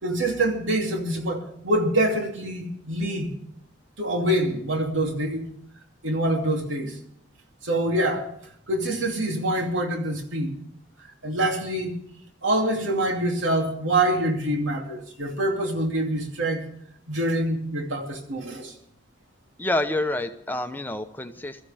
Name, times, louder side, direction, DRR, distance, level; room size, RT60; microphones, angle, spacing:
voice 1, 0.0-3.3 4.0-5.4 6.0-7.0 7.6-8.3 8.7-10.5 11.2-12.0 12.4-16.7 17.1-18.7, right 1 dB, 85° right, 2.8 m, -25 dB
voice 2, 19.6-21.6, left 1 dB, 10° left, 0.8 m, -28 dB
22.5 x 13.5 x 3.5 m
head